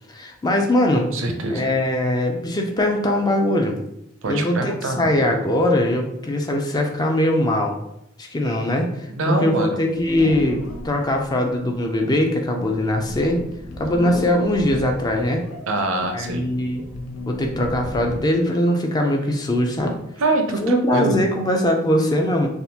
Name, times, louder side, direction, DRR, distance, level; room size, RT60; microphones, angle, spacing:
voice 1, 0.1-1.1 1.5-3.8 4.3-7.7 8.2-13.4 13.8-15.4 16.1-16.8 17.3-19.9 20.6-22.5, left 1 dB, 20° left, 2 dB, 0.3 m, -21 dB
voice 2, 1.1-1.7 4.2-5.1 9.1-9.8 15.7-16.5 20.2-21.2, right 2 dB, 75° right, 5 dB, 0.5 m, -24 dB
sound 1, 9.9-18.4, left 2 dB, 85° left, 0.5 m, -35 dB
3.5 x 2.4 x 2.7 m, 0.82 s
head